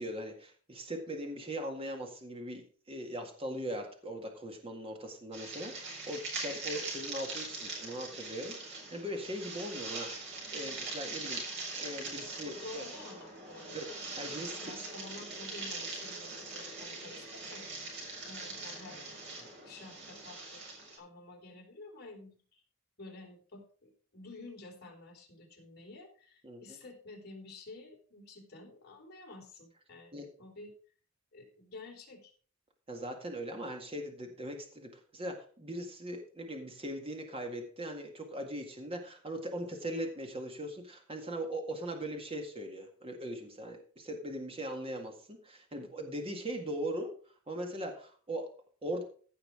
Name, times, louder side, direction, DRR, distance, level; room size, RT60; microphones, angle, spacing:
voice 1, 0.0-2.6 2.9-11.4 11.8-12.8 13.7-13.9 14.2-14.7 26.4-26.6 30.1-30.3 32.9-47.1 47.5-48.5 48.8-49.0, right 1 dB, 25° right, 3 dB, 1.9 m, -40 dB
sound 1, 5.3-21.0, right 3 dB, 55° right, 4.4 m, -42 dB
voice 2, 12.4-14.0 14.3-17.7 18.2-22.6 23.0-30.7 31.3-32.3, left 2 dB, 45° left, -1 dB, 4.1 m, -51 dB
15.5 x 5.8 x 4.9 m, 0.42 s
head